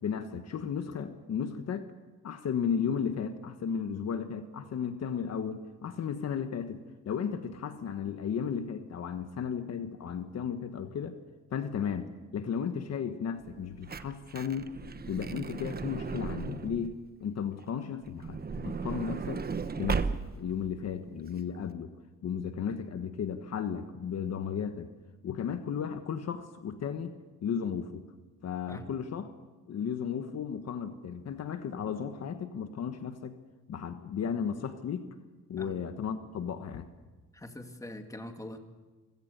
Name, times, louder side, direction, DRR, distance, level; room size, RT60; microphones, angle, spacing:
voice 1, 0.0-1.9 2.2-11.2 11.5-14.7 15.1-19.5 19.8-21.9 22.2-24.9 25.2-27.1 27.4-28.0 28.4-29.3 29.7-33.4 33.7-35.1 35.5-36.9, left 7 dB, 60° left, 8 dB, 1.4 m, -34 dB
Truck / Door, 13.5-17.0 18.0-20.6 21.3-21.4 21.5-21.7, right 5 dB, 30° right, 1.1 m, -35 dB
voice 2, 37.3-38.6, left 1 dB, 10° left, 5 dB, 2.3 m, -43 dB
25.5 x 16.5 x 6.8 m, 1.2 s
cardioid pair, 90°, 30 cm